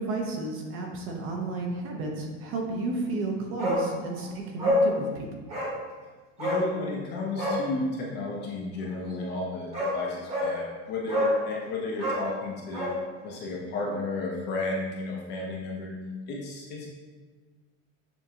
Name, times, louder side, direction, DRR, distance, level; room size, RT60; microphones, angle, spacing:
voice 1, 0.0-5.3, right 2 dB, 35° right, 1 dB, 0.5 m, -32 dB
Bark, 3.6-3.9 4.2-4.3 4.6-4.9 5.5-5.8 6.4-6.7 7.3-7.6 9.2-9.3 9.7-10.0 10.3-10.5 11.1-11.4 11.9-13.0 13.3-13.4, left 1 dB, 15° right, 1.0 m, -26 dB
voice 2, 6.4-12.9 13.2-15.9 16.3-16.9, left 2 dB, 30° left, -2 dB, 0.5 m, -33 dB
6.9 x 2.5 x 2.8 m, 1.4 s
supercardioid pair, 160°, 39 cm